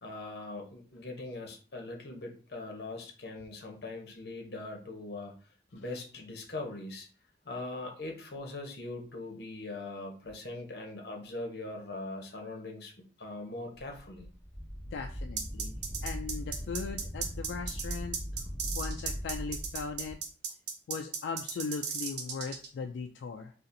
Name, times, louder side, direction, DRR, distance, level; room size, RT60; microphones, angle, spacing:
voice 1, 0.0-5.3 5.7-7.1 7.4-12.9 13.2-14.3, left 2 dB, 65° left, 1 dB, 0.8 m, -41 dB
Wind, 13.7-20.2, equal, 5° right, 1.6 m, -39 dB
voice 2, 14.9-18.2 18.7-20.2 20.9-23.5, left 5 dB, 90° left, 4 dB, 0.3 m, -39 dB
sound 1, 15.4-22.7, right 6 dB, 75° right, 0.6 m, -36 dB
4.0 x 2.5 x 2.6 m, 0.40 s
head